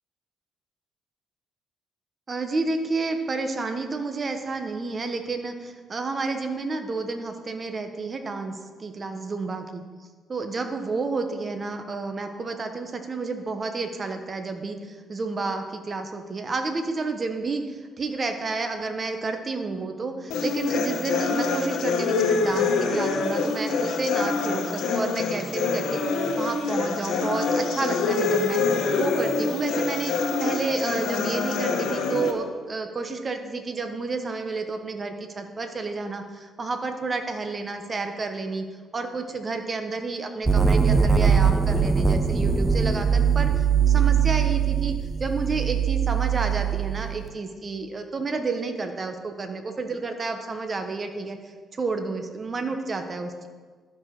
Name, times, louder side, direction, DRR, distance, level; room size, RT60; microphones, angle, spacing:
voice 1, 2.3-9.8 10.3-26.0 26.4-28.6 29.0-38.7 38.9-44.9 45.2-51.4 51.8-53.5, right 3 dB, 35° right, 6 dB, 1.1 m, -30 dB
sound 1, 20.3-32.3, left 4 dB, 80° left, 1.2 m, -25 dB
sound 2, 40.5-47.2, right 6 dB, 15° right, 0.8 m, -21 dB
12.5 x 5.0 x 6.1 m, 1.5 s
cardioid pair, 90°, 0 cm